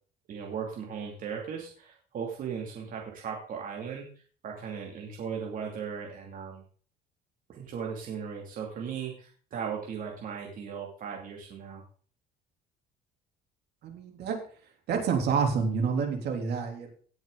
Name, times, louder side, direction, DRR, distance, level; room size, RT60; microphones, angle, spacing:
voice 1, 0.3-4.1 4.4-6.6 7.5-11.8, right 7 dB, 50° right, -1 dB, 2.7 m, -37 dB
voice 2, 13.8-14.4 14.9-16.9, right 6 dB, 65° right, 2 dB, 3.4 m, -28 dB
18.0 x 7.2 x 4.0 m, 0.43 s
cardioid pair, 135°, 18 cm